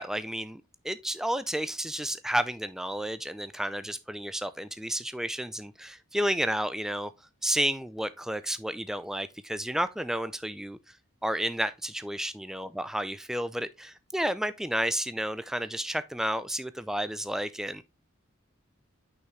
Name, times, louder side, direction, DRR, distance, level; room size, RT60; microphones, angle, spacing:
voice 1, 0.0-7.1 7.4-10.8 11.2-17.9, right 1 dB, ahead, 0.3 m, -31 dB
6.2 x 5.7 x 3.1 m
head